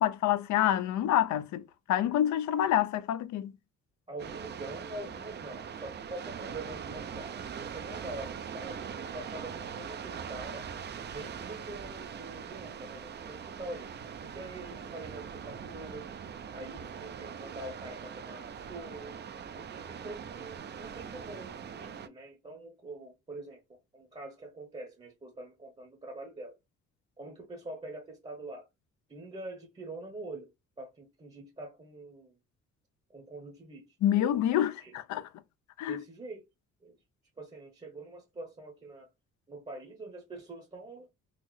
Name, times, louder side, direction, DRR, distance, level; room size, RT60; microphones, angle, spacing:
voice 1, 0.0-3.5 34.0-35.3 35.8-36.0, left 11 dB, 70° left, 0.5 m, -27 dB
voice 2, 4.1-10.7 11.1-13.9 14.2-16.1 16.5-19.2 19.5-26.6 27.2-28.7 29.1-30.5 30.8-32.4 33.1-34.9 35.9-36.5 36.8-37.0 37.4-39.1 39.5-41.1, right 2 dB, 20° right, 0.8 m, -45 dB
sound 1, 4.2-22.1, right 7 dB, 35° right, 0.4 m, -42 dB
3.9 x 2.0 x 3.1 m
cardioid pair, 90°, 30 cm